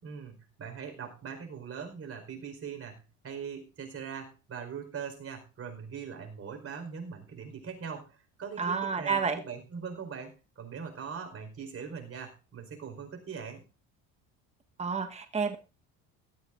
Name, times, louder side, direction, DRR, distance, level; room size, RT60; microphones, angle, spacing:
voice 1, 0.0-13.6, right 6 dB, 40° right, 4 dB, 4.9 m, -41 dB
voice 2, 8.6-9.4 14.8-15.6, right 5 dB, 20° right, 6 dB, 1.3 m, -30 dB
17.5 x 13.5 x 2.6 m, 0.30 s
supercardioid pair, 90°, 34 cm